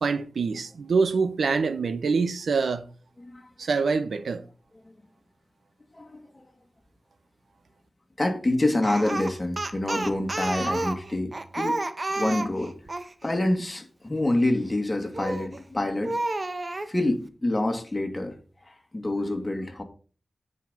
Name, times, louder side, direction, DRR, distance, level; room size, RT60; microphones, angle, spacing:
voice 1, 0.0-2.9 3.6-4.4, right 4 dB, 85° right, 0.7 m, -25 dB
voice 2, 5.9-6.4 8.2-11.8 12.2-12.7 13.2-16.2 16.9-18.3 18.7-19.8, left 1 dB, 25° left, 2.2 m, -27 dB
Speech, 8.8-13.1 15.1-15.6 16.0-16.9, right 2 dB, 35° right, 1.0 m, -30 dB
9.2 x 5.2 x 5.4 m
wide cardioid pair, 75°, 0 cm